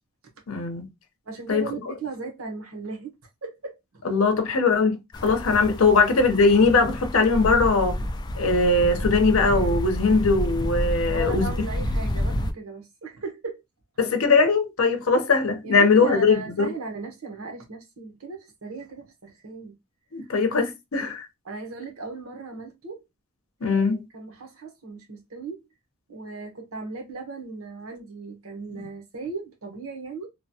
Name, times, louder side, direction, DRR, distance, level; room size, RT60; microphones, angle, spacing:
voice 1, 0.5-0.9 1.5-1.6 4.0-8.0 8.4-11.5 14.0-16.7 20.1-21.3 23.6-24.0, left 4 dB, 75° left, 0.7 m, -20 dB
voice 2, 1.3-4.0 5.8-6.0 11.1-13.6 15.6-19.7 20.2-20.3 21.4-23.0 23.6-25.6 26.1-30.3, right 3 dB, 85° right, 0.9 m, -37 dB
sound 1, 5.1-12.5, left 1 dB, 20° left, 0.3 m, -29 dB
3.1 x 2.2 x 2.7 m
head